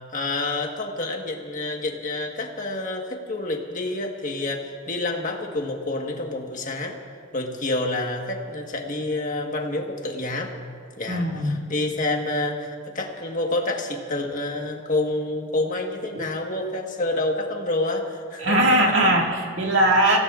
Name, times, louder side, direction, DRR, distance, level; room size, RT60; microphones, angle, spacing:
voice 1, 0.1-7.0 7.3-10.5 11.0-19.1, left 2 dB, 40° left, 2 dB, 1.5 m, -28 dB
voice 2, 11.1-11.6 16.1-16.2 18.4-20.2, right 1 dB, 65° right, -1 dB, 2.2 m, -20 dB
27.5 x 16.5 x 2.5 m, 2.1 s
head